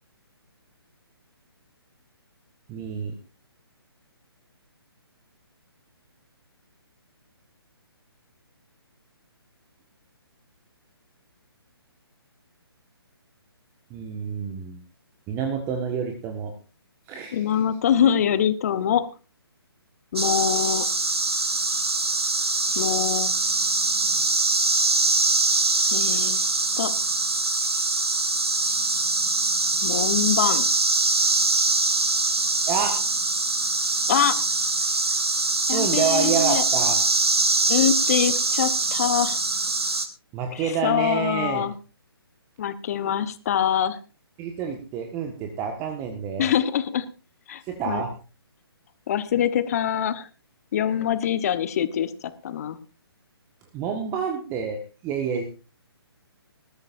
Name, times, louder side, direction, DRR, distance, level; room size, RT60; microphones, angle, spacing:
voice 1, 2.7-3.1 13.9-14.8 15.3-16.5 17.1-17.6 32.7-32.9 35.7-37.0 40.3-41.7 44.4-46.5 47.6-48.1 50.8-50.9 53.7-55.5, right 7 dB, 20° right, 4 dB, 1.6 m, -28 dB
voice 2, 17.3-19.0 20.1-20.9 22.7-23.3 25.9-26.4 26.8-26.9 29.8-30.6 34.1-34.4 35.7-36.6 37.7-39.4 40.5-41.7 42.6-44.0 46.4-47.0 47.5-48.0 49.1-50.3 50.7-52.8, left 9 dB, 35° left, 13 dB, 1.2 m, -24 dB
sound 1, 20.2-40.1, right 3 dB, 70° right, 2.4 m, -23 dB
19.5 x 13.5 x 2.7 m, 0.34 s
figure-of-eight pair, 135°, 13 cm